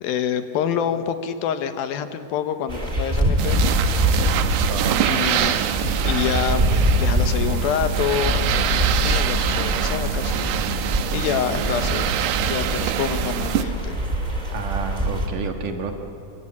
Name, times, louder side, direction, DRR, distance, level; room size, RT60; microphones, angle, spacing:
voice 1, 0.0-3.6 5.1-12.2 12.5-14.0, left 8 dB, 75° left, 9 dB, 2.7 m, -27 dB
sound 1, 2.7-15.3, equal, 25° right, 1.0 m, -24 dB
sound 2, 3.4-13.6, right 10 dB, 90° right, 3.1 m, -25 dB
voice 2, 4.7-5.1 5.4-5.6 14.5-15.9, right 5 dB, 60° right, 5 dB, 2.7 m, -30 dB
25.5 x 23.5 x 8.6 m, 2.8 s
omnidirectional pair, 4.5 m